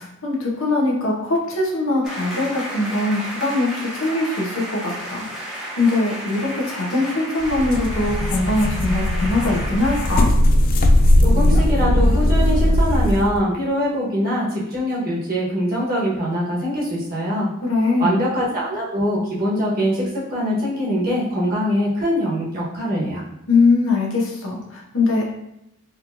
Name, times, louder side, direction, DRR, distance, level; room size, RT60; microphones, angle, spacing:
voice 1, 0.0-5.2 5.8-10.3 17.6-18.2 23.5-25.2, left 2 dB, 65° left, -2 dB, 1.0 m, -21 dB
sound 1, 2.0-10.2, equal, ahead, 1.0 m, -33 dB
sound 2, 7.4-13.4, left 1 dB, 45° left, 0.3 m, -18 dB
voice 2, 11.2-17.5 18.0-20.0 20.3-23.2, equal, 45° right, -6 dB, 1.3 m, -23 dB
4.1 x 3.0 x 2.6 m, 0.81 s
head